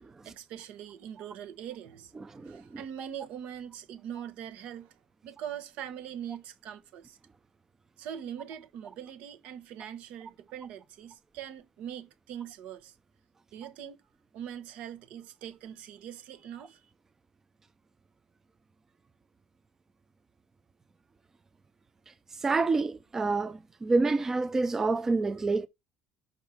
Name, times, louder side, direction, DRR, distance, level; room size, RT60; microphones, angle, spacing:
voice 1, 0.2-2.1 2.4-4.9 5.2-7.2 8.0-12.9 13.5-14.0 14.3-16.9, right 9 dB, 70° right, 1.2 m, -42 dB
voice 2, 2.3-2.6 22.4-25.7, right 3 dB, 20° right, 0.5 m, -27 dB
5.4 x 5.2 x 5.9 m
cardioid pair, 140°, 2 cm